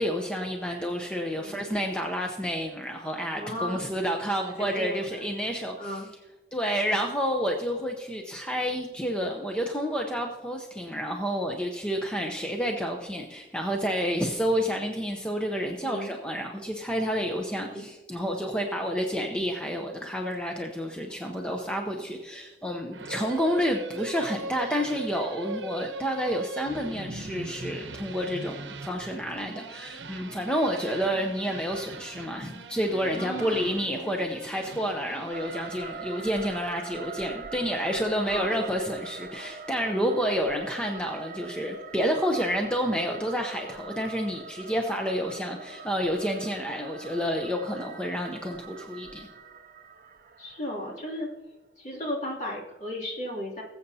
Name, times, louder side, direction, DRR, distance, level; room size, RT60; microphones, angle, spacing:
voice 1, 0.0-6.0 6.5-49.3, equal, 5° left, 2 dB, 0.7 m, -29 dB
voice 2, 1.4-1.8 3.3-4.1 4.5-5.3 5.8-6.1 15.8-16.1 17.7-17.9 33.1-33.8 38.3-38.8 39.9-40.1 43.1-43.3 50.4-51.3 51.8-53.6, equal, 40° left, -2 dB, 2.6 m, -35 dB
sound 1, 22.9-36.5, right 2 dB, 85° right, 0.8 m, -40 dB
sound 2, 35.3-51.3, right 4 dB, 50° right, 0.5 m, -43 dB
19.5 x 7.9 x 2.8 m, 1.2 s
head